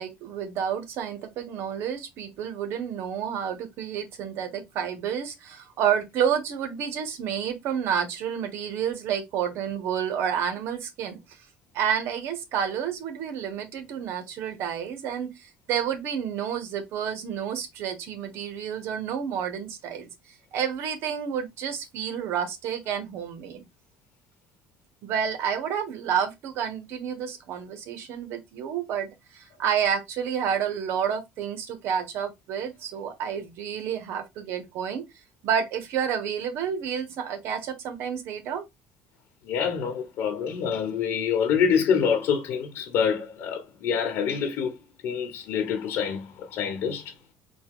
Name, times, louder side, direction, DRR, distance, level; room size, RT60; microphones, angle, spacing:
voice 1, 0.0-11.2 11.7-20.1 20.5-23.6 25.0-29.1 29.3-35.0 35.4-38.6, right 8 dB, 70° right, 1.1 m, -30 dB
voice 2, 39.4-44.7 45.0-47.1, left 7 dB, 70° left, 1.1 m, -26 dB
4.2 x 2.3 x 3.6 m
cardioid pair, 105°, 4 cm